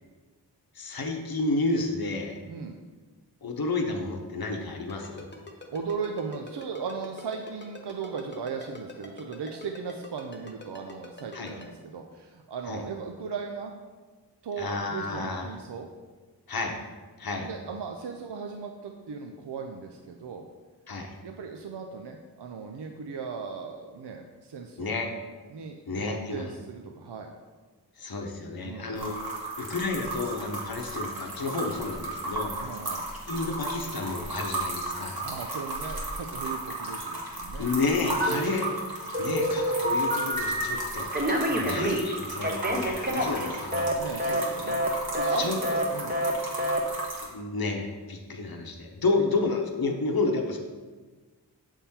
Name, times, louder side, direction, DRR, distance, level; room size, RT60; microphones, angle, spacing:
voice 1, 0.7-2.4 3.4-5.3 11.3-11.5 12.7-12.8 14.6-15.6 16.5-16.8 17.2-17.5 20.9-21.1 24.8-25.1 25.9-26.5 28.0-32.6 33.3-35.2 37.6-38.9 39.2-44.0 45.3-45.6 47.2-50.6, left 3 dB, 60° left, 2 dB, 0.8 m, -31 dB
voice 2, 2.5-2.8 5.7-13.7 14.4-15.9 17.4-20.5 21.2-25.0 25.5-27.3 28.6-28.9 32.6-33.0 35.2-37.7 38.0-38.2 41.5-41.8 43.9-44.8 45.1-46.2, right 5 dB, 75° right, 3 dB, 0.5 m, -37 dB
Ringtone, 4.9-11.7, left 2 dB, 25° left, 0.9 m, -44 dB
sound 1, 29.0-47.2, right 2 dB, 60° right, 1.4 m, -35 dB
Telephone, 38.2-38.8 39.1-40.7 41.1-43.9 44.2-44.4 44.7-44.9 45.1-45.4 45.6-45.8 46.1-46.3 46.6-46.8, equal, 20° right, 0.8 m, -27 dB
7.2 x 3.6 x 4.3 m, 1.4 s
wide cardioid pair, 45°, 42 cm